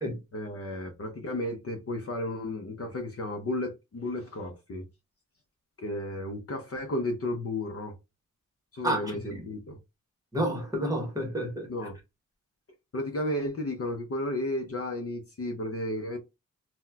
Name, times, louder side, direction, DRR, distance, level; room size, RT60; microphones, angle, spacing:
voice 1, 0.3-4.9 5.8-7.9 8.7-9.8 11.7-12.0 12.9-16.2, left 1 dB, 45° left, 0.6 m, -33 dB
voice 2, 8.8-9.4 10.3-11.7, right 1 dB, 10° right, 1.1 m, -30 dB
4.1 x 2.1 x 2.3 m
wide cardioid pair, 150°, 32 cm